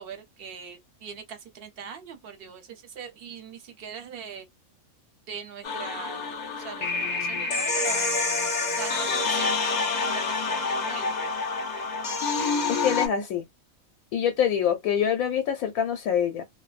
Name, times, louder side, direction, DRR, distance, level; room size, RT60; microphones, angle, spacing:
voice 1, 0.0-4.5 5.3-8.1 8.7-9.5 10.1-11.3, right 7 dB, 55° right, 0.7 m, -41 dB
sound 1, 5.6-13.1, left 4 dB, 50° left, 0.5 m, -27 dB
voice 2, 12.7-13.4 14.1-16.4, left 8 dB, 85° left, 1.1 m, -25 dB
2.6 x 2.0 x 2.4 m
omnidirectional pair, 1.5 m